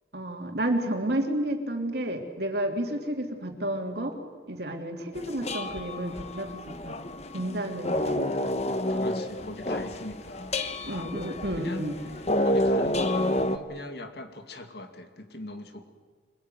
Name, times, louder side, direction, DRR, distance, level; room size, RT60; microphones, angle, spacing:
voice 1, 0.1-4.1 4.5-6.9 7.3-8.5 10.8-11.9, right 1 dB, 60° right, 3 dB, 3.1 m, -31 dB
sound 1, 5.1-13.6, left 1 dB, 35° left, 1.2 m, -29 dB
voice 2, 8.8-10.6 10.9-11.9 12.4-15.9, left 1 dB, 55° left, 7 dB, 2.3 m, -40 dB
24.5 x 22.0 x 9.4 m, 1.5 s
head